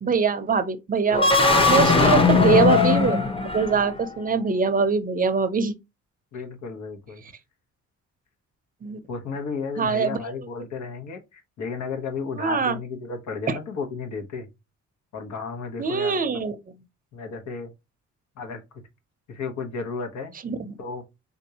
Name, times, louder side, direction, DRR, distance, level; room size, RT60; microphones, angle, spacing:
voice 1, 0.0-1.3 1.7-3.2 3.5-5.7 8.8-9.0 9.8-10.2 12.3-12.8 13.5-13.6 15.8-16.5 20.4-20.8, right 5 dB, 30° right, 0.6 m, -23 dB
sound 1, 1.1-4.1, left 4 dB, 20° left, 0.8 m, -19 dB
voice 2, 6.3-7.2 9.1-14.5 15.1-16.4 17.1-17.7 18.4-18.6 19.3-20.3 20.8-21.0, left 5 dB, 70° left, 1.1 m, -33 dB
3.7 x 2.7 x 2.8 m
cardioid pair, 90°, 30 cm